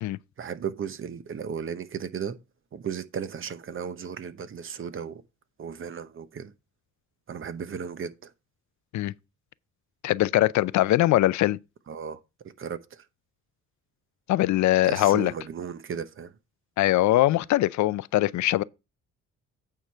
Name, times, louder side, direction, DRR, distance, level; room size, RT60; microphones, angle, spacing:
voice 1, 0.4-2.4 2.7-5.2 5.6-6.5 7.3-8.3 11.9-13.1 14.8-16.4, right 7 dB, 45° right, 0.8 m, -35 dB
voice 2, 10.0-11.6 14.3-15.3 16.8-18.6, left 15 dB, 70° left, 0.5 m, -22 dB
9.0 x 4.8 x 5.5 m
cardioid pair, 90°, 30 cm